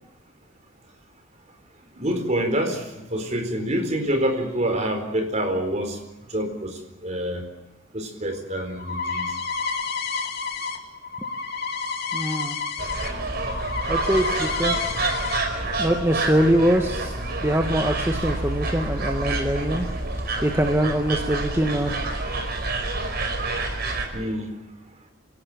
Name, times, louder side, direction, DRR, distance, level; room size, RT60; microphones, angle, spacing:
voice 1, 2.0-6.0 6.3-7.5 7.9-9.4 24.1-24.6, right 1 dB, 35° right, 6 dB, 4.3 m, -27 dB
sound 1, 8.3-13.1 13.4-15.4, left 4 dB, 50° left, 2.9 m, -30 dB
voice 2, 12.1-12.6 13.9-14.9 15.8-17.2 17.4-19.9 20.4-22.0, equal, 15° right, 3 dB, 1.7 m, -23 dB
sound 2, 12.8-24.1, right 2 dB, 50° right, 4.7 m, -28 dB
27.0 x 17.5 x 9.0 m, 1.0 s
head